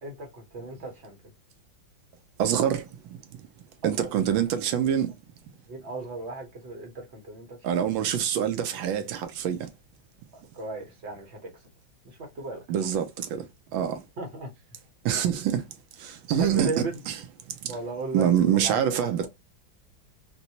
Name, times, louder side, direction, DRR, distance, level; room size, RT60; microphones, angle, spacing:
voice 1, 0.0-1.2 3.8-4.3 5.7-7.8 10.5-11.5 12.0-12.6 14.2-14.5 16.4-17.0 17.7-18.3 18.5-18.8, right 3 dB, 45° right, 0.9 m, -36 dB
voice 2, 2.4-3.5 3.8-5.1 7.6-9.7 12.7-14.0 15.0-17.2 17.5-17.7 18.1-19.3, right 9 dB, 80° right, 1.3 m, -26 dB
4.0 x 2.2 x 2.7 m
omnidirectional pair, 2.2 m